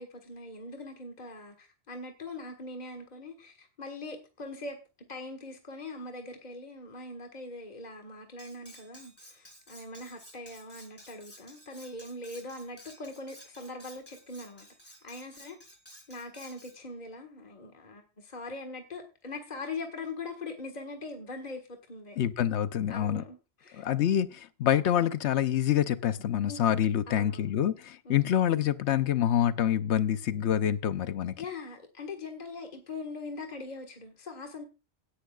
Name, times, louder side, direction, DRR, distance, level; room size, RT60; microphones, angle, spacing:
voice 1, 0.0-14.7 15.0-15.6 16.1-22.2 22.9-23.9 26.5-26.8 27.1-27.5 28.1-28.3 31.4-34.6, left 2 dB, 40° left, 1.7 m, -42 dB
Cutlery silverware, 8.4-16.8, equal, 20° left, 3.6 m, -53 dB
voice 2, 22.2-23.2 23.8-31.3, left 10 dB, 90° left, 1.0 m, -26 dB
17.5 x 10.0 x 2.4 m
omnidirectional pair, 1.1 m